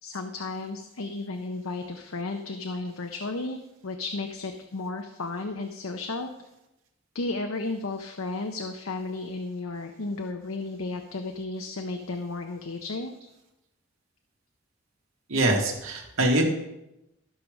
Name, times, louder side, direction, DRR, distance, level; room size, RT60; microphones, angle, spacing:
voice 1, 0.0-6.3 7.1-13.1, left 3 dB, 85° left, 5 dB, 0.8 m, -33 dB
voice 2, 15.3-16.4, right 1 dB, 75° right, 1 dB, 1.9 m, -23 dB
13.5 x 4.9 x 6.4 m, 0.90 s
head